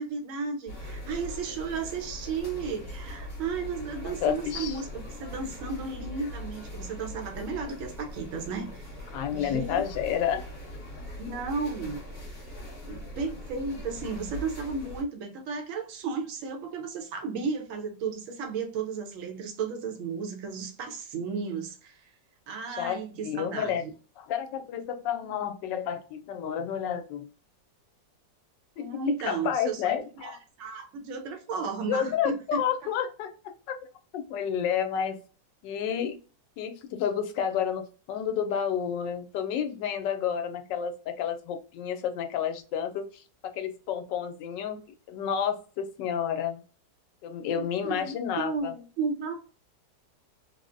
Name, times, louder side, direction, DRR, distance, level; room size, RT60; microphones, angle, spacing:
voice 1, 0.0-8.9 9.3-9.8 11.2-12.4 12.8-22.0 22.5-23.9 28.8-32.4 47.5-49.3, right 4 dB, 60° right, 0.9 m, -34 dB
sound 1, 0.7-15.0, left 1 dB, 40° left, 1.1 m, -41 dB
voice 2, 4.2-4.8 9.1-10.4 22.8-23.8 24.2-27.3 28.8-29.0 29.2-30.4 31.9-33.8 34.1-35.2 35.6-36.1 36.6-44.8 45.1-46.6 47.2-48.7, left 8 dB, 85° left, 1.2 m, -30 dB
3.6 x 2.0 x 2.5 m
omnidirectional pair, 1.9 m